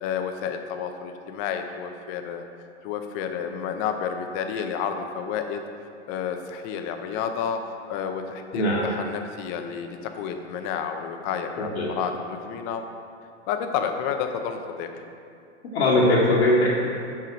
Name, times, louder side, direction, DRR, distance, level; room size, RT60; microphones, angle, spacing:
voice 1, 0.0-2.5 2.8-5.6 6.1-7.6 7.9-9.9 10.1-11.7 12.0-12.8 13.5-14.9, left 7 dB, 35° left, 6 dB, 0.7 m, -30 dB
voice 2, 8.5-8.9 11.6-11.9 15.7-16.7, left 1 dB, 60° left, -6 dB, 1.4 m, -20 dB
5.9 x 4.8 x 5.9 m, 2.4 s
hypercardioid pair, 115°, 36 cm